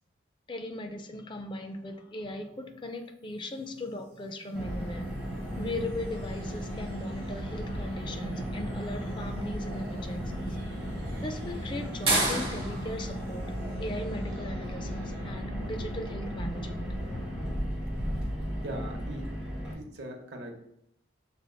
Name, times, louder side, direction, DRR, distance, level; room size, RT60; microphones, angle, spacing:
voice 1, 0.5-5.1 5.6-10.6 11.2-13.5 13.8-16.9, left 1 dB, 25° left, 6 dB, 0.4 m, -38 dB
sound 1, 3.6-15.6, right 2 dB, 30° right, 1.3 m, -38 dB
Car, 4.5-19.7, equal, 5° right, 1.6 m, -35 dB
voice 2, 18.6-19.3 19.7-20.5, right 1 dB, 65° right, 3 dB, 0.8 m, -40 dB
6.1 x 3.5 x 2.2 m, 0.78 s
head